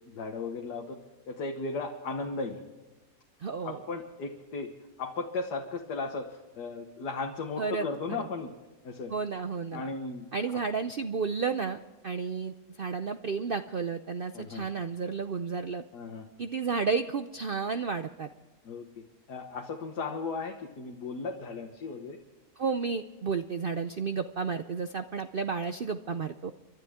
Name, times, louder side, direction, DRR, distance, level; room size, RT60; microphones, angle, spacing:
voice 1, 0.1-1.0 1.3-2.6 3.6-4.7 5.0-8.5 8.8-9.1 9.7-10.6 14.3-14.7 15.9-16.3 18.6-18.9 19.3-22.2, left 3 dB, 80° left, 2 dB, 1.8 m, -36 dB
voice 2, 3.4-3.8 7.6-7.9 8.2-8.3 9.1-9.9 10.3-15.8 16.4-18.3 22.6-26.5, right 5 dB, 65° right, 9 dB, 0.5 m, -32 dB
30.0 x 12.0 x 3.6 m, 1.2 s
omnidirectional pair, 1.7 m